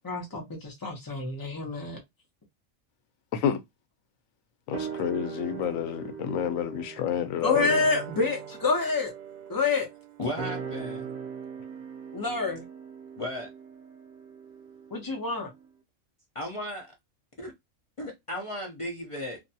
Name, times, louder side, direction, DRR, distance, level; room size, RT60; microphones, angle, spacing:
voice 1, 0.0-2.0 7.4-9.1 9.5-9.9 12.1-12.6 14.9-15.5, left 4 dB, 20° left, 0.7 m, -27 dB
voice 2, 4.7-7.8, left 9 dB, 85° left, 1.0 m, -29 dB
sound 1, 4.7-15.3 15.6-15.7, right 7 dB, 65° right, 0.4 m, -39 dB
voice 3, 10.2-11.1 13.2-13.5 16.3-16.9 17.4-17.5 18.0-19.4, left 1 dB, 55° left, 0.3 m, -35 dB
2.6 x 2.2 x 2.6 m
omnidirectional pair, 1.4 m